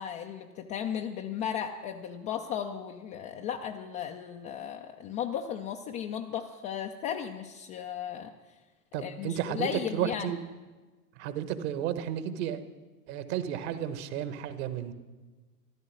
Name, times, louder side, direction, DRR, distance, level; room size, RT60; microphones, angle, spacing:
voice 1, 0.0-8.3 9.0-10.3, left 8 dB, 20° left, 3 dB, 0.4 m, -35 dB
voice 2, 8.9-10.4 11.2-12.6 13.1-14.9, right 10 dB, 45° right, 12 dB, 1.3 m, -32 dB
14.0 x 12.5 x 6.4 m, 1.3 s
figure-of-eight pair, 90°, 47 cm